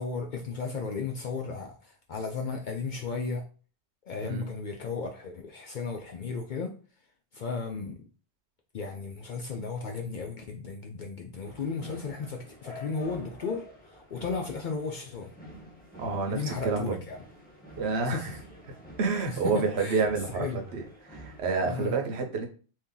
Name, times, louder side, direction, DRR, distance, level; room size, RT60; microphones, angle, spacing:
voice 1, 0.0-3.4 4.1-6.7 7.3-8.0 8.7-13.6 13.9-15.3 16.3-17.2 18.0-18.4 19.3-20.0 20.3-20.6 21.6-22.0, left 4 dB, 60° left, 0.5 m, -35 dB
sound 1, 11.4-21.4, equal, 10° left, 0.8 m, -48 dB
voice 2, 16.0-17.0 17.8-18.3 19.0-20.8 21.1-22.5, right 4 dB, 70° right, 1.0 m, -29 dB
2.8 x 2.6 x 3.7 m
omnidirectional pair, 1.2 m